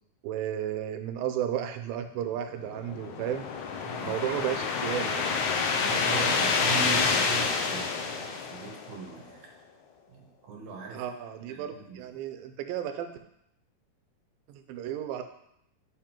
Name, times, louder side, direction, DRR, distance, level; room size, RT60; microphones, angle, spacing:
voice 1, 0.2-3.5 4.1-5.3 10.9-13.1 14.5-15.2, right 10 dB, 80° right, 8 dB, 2.3 m, -33 dB
sound 1, 2.6-9.1, left 5 dB, 90° left, 1.6 m, -28 dB
voice 2, 3.8-4.2 5.8-9.5 10.1-11.0 11.5-12.1, right 6 dB, 60° right, -1 dB, 2.2 m, -39 dB
7.7 x 3.8 x 4.4 m, 0.75 s
omnidirectional pair, 4.3 m